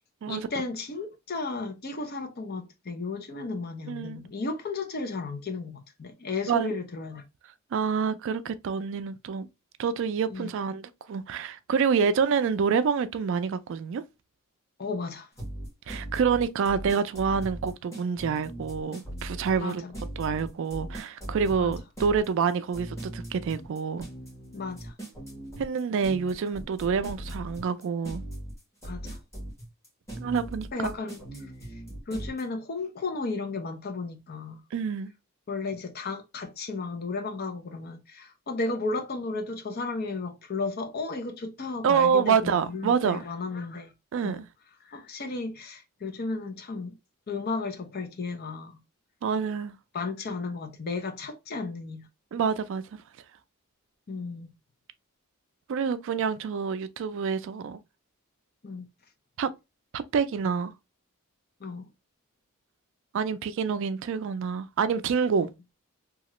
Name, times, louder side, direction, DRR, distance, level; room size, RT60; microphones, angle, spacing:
voice 1, 0.3-7.2 10.3-10.5 14.8-15.3 19.6-19.9 21.6-21.7 24.5-24.9 28.8-29.2 30.7-31.8 32.1-34.6 35.5-43.9 44.2-44.4 44.8-47.0 47.3-48.8 49.9-52.1 54.1-54.5 58.6-58.9 61.6-61.9, left 3 dB, 45° left, 0.6 m, -34 dB
voice 2, 3.9-4.2 6.5-6.7 7.7-9.5 9.8-14.0 15.9-19.8 20.2-24.1 25.6-28.2 30.2-30.9 34.7-35.1 41.8-43.2 44.1-44.5 49.2-49.7 52.3-52.8 55.7-57.8 59.4-59.5 59.9-60.7 63.1-65.5, right 6 dB, 60° right, 0.3 m, -27 dB
Stevie run, 15.4-32.4, right 1 dB, 15° left, 1.4 m, -39 dB
2.9 x 2.4 x 2.9 m
head